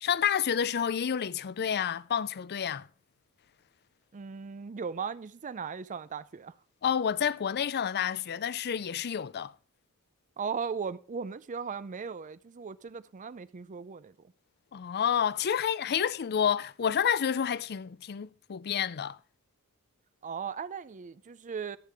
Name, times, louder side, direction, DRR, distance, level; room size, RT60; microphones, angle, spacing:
voice 1, 0.0-2.9 6.8-9.5 14.7-19.2, left 8 dB, 45° left, 0.5 m, -29 dB
voice 2, 4.1-6.5 10.4-14.3 20.2-21.8, right 6 dB, 35° right, 0.4 m, -37 dB
14.0 x 8.3 x 3.4 m
head